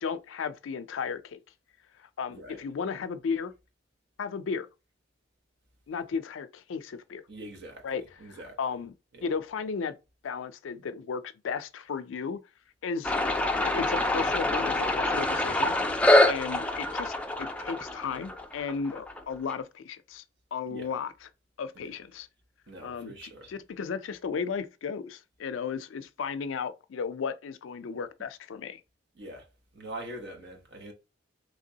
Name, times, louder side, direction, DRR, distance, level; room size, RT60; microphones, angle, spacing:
voice 1, 0.0-1.4 2.0-3.5 4.2-4.7 5.9-7.2 7.8-8.9 9.2-10.0 10.2-12.4 12.8-13.3 13.6-15.8 16.3-20.2 20.5-21.3 21.6-22.3 22.8-28.8, left 5 dB, 80° left, 0.4 m, -35 dB
voice 2, 2.3-2.6 7.3-8.8 9.1-9.3 20.7-20.9 21.7-21.9 22.7-23.5 29.2-29.4 29.7-30.9, right 1 dB, 60° right, 0.9 m, -44 dB
sound 1, 13.0-19.6, left 1 dB, 5° left, 0.4 m, -26 dB
3.2 x 2.9 x 2.7 m
head